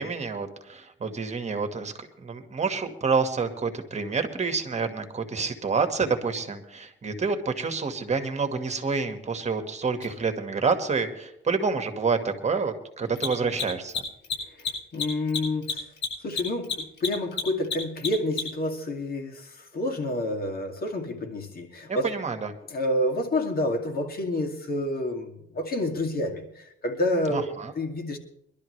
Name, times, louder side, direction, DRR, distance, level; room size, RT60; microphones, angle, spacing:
voice 1, 0.0-14.0 21.9-22.5 27.3-27.7, right 4 dB, 35° right, 7 dB, 1.7 m, -28 dB
Mechanisms, 10.0-10.1 13.1-18.7, left 5 dB, 65° left, 7.6 m, -30 dB
voice 2, 14.5-15.9 16.2-22.1 22.7-28.2, left 1 dB, 50° left, 3 dB, 2.4 m, -29 dB
23.5 x 12.0 x 3.3 m, 0.77 s
cardioid pair, 90°, 20 cm